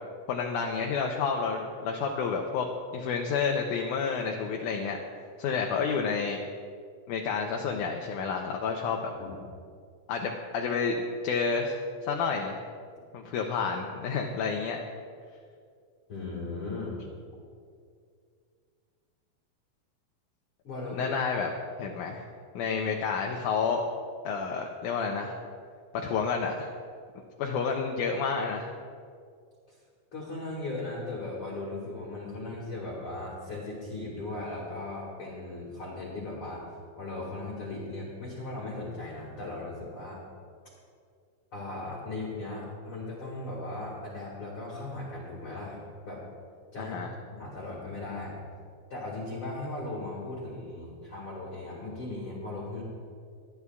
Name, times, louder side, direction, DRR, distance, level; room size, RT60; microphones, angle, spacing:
voice 1, 0.3-2.7 2.9-5.0 5.4-6.4 7.1-9.1 10.1-12.6 13.1-14.8 20.9-21.5 21.8-22.2 22.6-23.8 24.3-25.4 25.9-26.7 27.4-28.7 46.8-47.1, left 5 dB, 75° left, 2 dB, 1.9 m, -30 dB
voice 2, 16.1-17.0 20.6-21.2 30.1-36.6 37.0-40.2 41.5-46.2 46.7-47.0 47.3-48.3 48.9-52.8, left 2 dB, 45° left, -5 dB, 2.2 m, -37 dB
25.0 x 9.7 x 2.4 m, 2.2 s
omnidirectional pair, 4.1 m